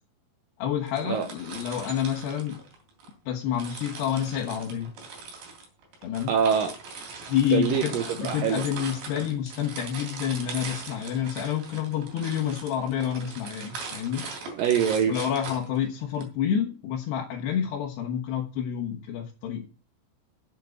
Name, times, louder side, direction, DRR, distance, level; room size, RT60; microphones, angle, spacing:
voice 1, 0.6-2.6 3.3-4.9 6.0-6.3 7.3-14.2 15.1-19.7, left 9 dB, 75° left, 3.3 m, -28 dB
sound 1, 0.9-3.1 3.5-16.2, right 4 dB, 60° right, 4.6 m, -40 dB
voice 2, 6.3-6.8 7.5-8.6 14.5-15.2, right 8 dB, 80° right, 2.0 m, -24 dB
8.4 x 7.4 x 7.9 m
omnidirectional pair, 5.0 m